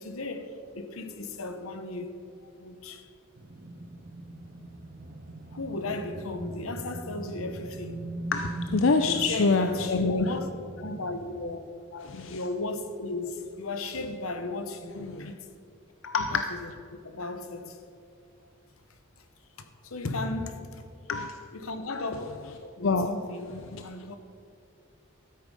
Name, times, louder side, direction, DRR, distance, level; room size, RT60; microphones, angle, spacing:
voice 1, 0.0-3.0 5.5-8.1 8.9-10.5 10.8-11.6 12.3-15.4 16.3-16.7 17.0-17.8 19.6-20.8 21.5-22.3 22.6-23.5 23.8-24.2, left 2 dB, 90° left, 1.0 m, -35 dB
sound 1, 3.3-11.4, right 1 dB, 45° right, 0.8 m, -40 dB
voice 2, 8.3-10.3 11.9-12.4 15.0-15.3 16.0-16.4 21.1-21.4 22.8-23.1 23.7-23.8, left 4 dB, 70° left, 0.5 m, -26 dB
13.5 x 8.3 x 5.3 m
head